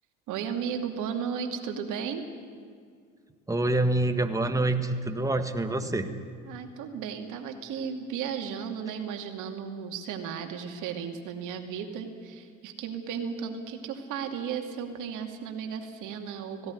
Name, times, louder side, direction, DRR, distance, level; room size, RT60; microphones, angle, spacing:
voice 1, 0.3-2.3 6.5-16.7, right 7 dB, 50° right, 4 dB, 2.6 m, -35 dB
voice 2, 3.5-6.1, right 2 dB, 10° right, 7 dB, 1.6 m, -26 dB
17.5 x 17.0 x 9.7 m, 2.1 s
hypercardioid pair, 80°, 40 cm